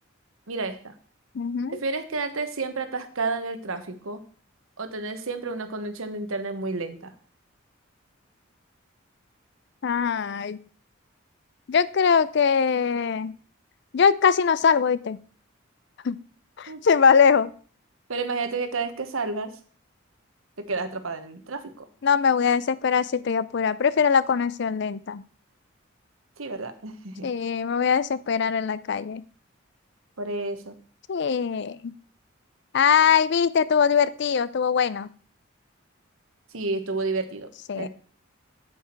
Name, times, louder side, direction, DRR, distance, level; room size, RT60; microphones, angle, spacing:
voice 1, 0.5-0.9 1.7-4.2 4.8-7.1 16.7-16.8 18.1-19.5 20.6-21.9 26.4-27.3 30.2-30.8 36.5-37.9, right 3 dB, 85° right, 9 dB, 1.2 m, -31 dB
voice 2, 1.3-1.8 9.8-10.6 11.7-13.4 13.9-15.2 16.0-16.2 16.6-17.5 22.0-25.2 27.2-29.2 31.1-31.9 32.7-35.1 37.7-37.9, left 6 dB, 55° left, 17 dB, 0.4 m, -22 dB
8.1 x 7.8 x 4.5 m, 0.43 s
head